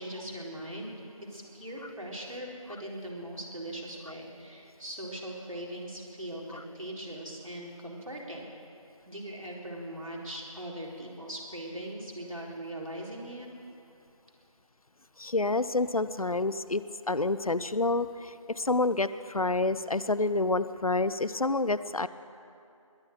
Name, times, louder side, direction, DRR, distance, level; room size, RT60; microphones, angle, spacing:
voice 1, 0.0-8.5 9.1-13.5, right 1 dB, 70° right, -2 dB, 4.0 m, -40 dB
voice 2, 15.2-22.1, left 2 dB, 85° left, 15 dB, 0.7 m, -28 dB
21.5 x 7.1 x 9.3 m, 2.6 s
figure-of-eight pair, 180°, 18 cm